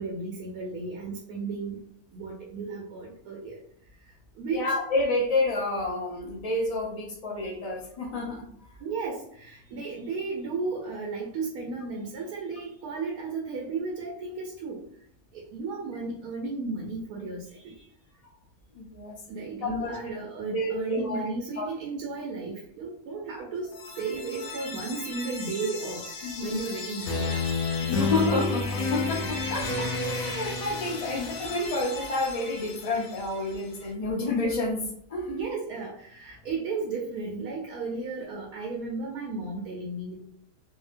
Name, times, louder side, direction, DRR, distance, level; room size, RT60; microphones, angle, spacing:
voice 1, 0.0-1.8 2.1-3.5 4.4-4.6 8.8-14.8 15.3-17.7 19.3-23.7 24.0-27.3 31.1-31.2 35.3-40.2, right 4 dB, 80° right, -2 dB, 1.2 m, -34 dB
voice 2, 4.5-8.5 18.7-19.2 19.6-20.0 20.5-21.3 21.6-21.7 26.2-26.6 27.7-35.3, left 2 dB, 55° left, -1 dB, 0.4 m, -29 dB
sound 1, 23.6-33.6, left 3 dB, 80° left, 1.3 m, -32 dB
2.8 x 2.7 x 2.5 m, 0.66 s
omnidirectional pair, 1.6 m